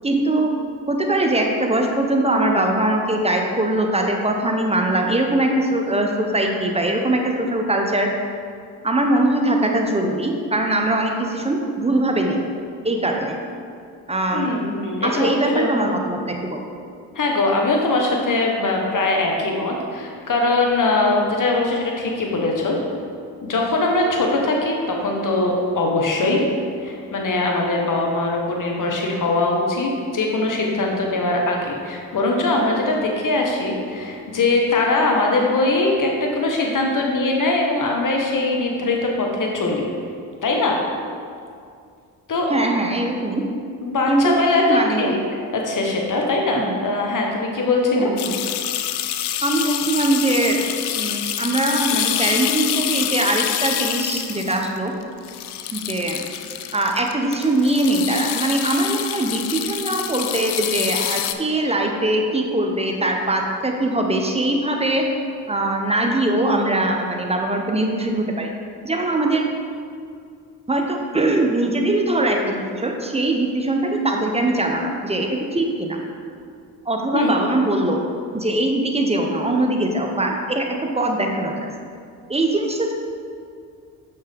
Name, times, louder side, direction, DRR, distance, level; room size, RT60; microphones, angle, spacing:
voice 1, 0.0-0.5 0.9-8.1 8.8-12.4 12.8-13.3 14.1-14.5 15.0-16.7 42.5-43.4 44.1-45.2 46.6-46.7 47.9-48.2 49.4-50.6 50.9-54.9 55.7-56.2 56.7-65.0 65.5-68.5 68.8-69.5 70.7-76.0 76.9-78.0 78.3-80.6 81.0-81.6 82.3-82.9, right 1 dB, 15° right, 2 dB, 0.9 m, -21 dB
voice 2, 14.3-15.7 17.1-22.8 23.4-26.4 26.8-39.9 40.4-40.8 42.3-42.5 43.8-45.2 45.5-48.1 77.1-77.6, left 2 dB, 40° left, 0 dB, 1.4 m, -21 dB
sound 1, 48.2-61.3, left 11 dB, 55° left, 0.5 m, -26 dB
6.5 x 5.5 x 3.6 m, 2.3 s
hypercardioid pair, 45°, 47 cm